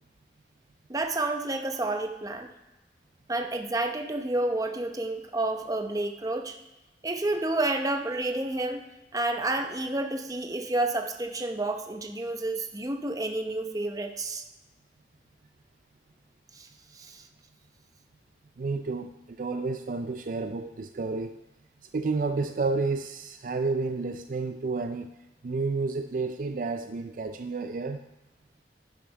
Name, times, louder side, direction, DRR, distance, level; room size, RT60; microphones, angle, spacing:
voice 1, 0.9-2.5 3.3-6.5 7.0-8.8 9.1-14.4 16.5-16.7 16.9-17.2, right 2 dB, 20° right, 5 dB, 0.8 m, -30 dB
voice 2, 18.6-21.4 21.8-25.1 25.4-28.0, right 3 dB, 45° right, 7 dB, 0.4 m, -31 dB
11.0 x 6.9 x 5.3 m, 1.0 s
head